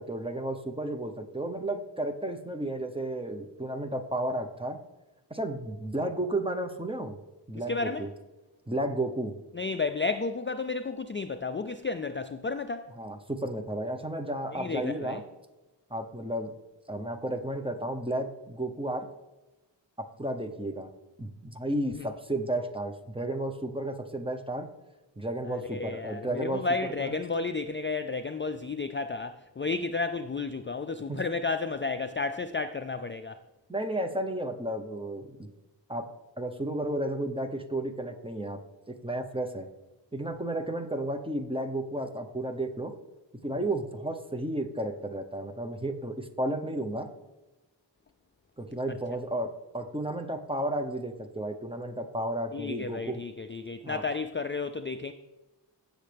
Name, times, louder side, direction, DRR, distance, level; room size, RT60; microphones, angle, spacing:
voice 1, 0.0-4.8 5.3-7.2 7.5-8.1 8.7-9.3 13.0-15.2 15.9-16.5 16.9-19.0 20.2-20.9 21.2-24.7 25.2-26.6 27.0-27.1 31.1-31.2 33.7-35.5 35.9-36.0 36.4-38.6 39.0-39.7 40.1-42.9 43.4-47.1 48.6-53.2 53.8-54.1, right 1 dB, 10° right, 0.9 m, -33 dB
voice 2, 7.7-8.1 9.5-12.9 14.5-15.2 21.9-22.1 25.4-33.4 52.5-55.1, left 4 dB, 30° left, 0.4 m, -32 dB
16.0 x 6.5 x 3.4 m
wide cardioid pair, 65°, 45 cm